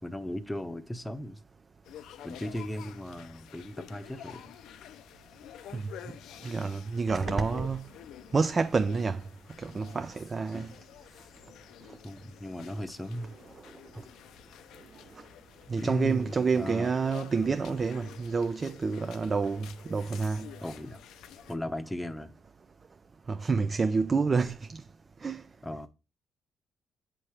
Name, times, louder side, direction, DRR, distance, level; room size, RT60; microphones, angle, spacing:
voice 1, 0.0-1.4 2.2-4.4 10.5-10.8 12.0-13.3 15.8-16.9 20.6-21.0 21.5-22.3 25.6-25.9, left 1 dB, 5° left, 0.7 m, -36 dB
sound 1, 1.9-21.6, left 11 dB, 85° left, 0.5 m, -49 dB
voice 2, 6.4-7.8 8.3-9.2 9.6-10.7 15.7-20.5 23.3-24.8 25.2-25.4, right 4 dB, 35° right, 0.4 m, -28 dB
8.2 x 3.0 x 4.8 m
cardioid pair, 90°, 0 cm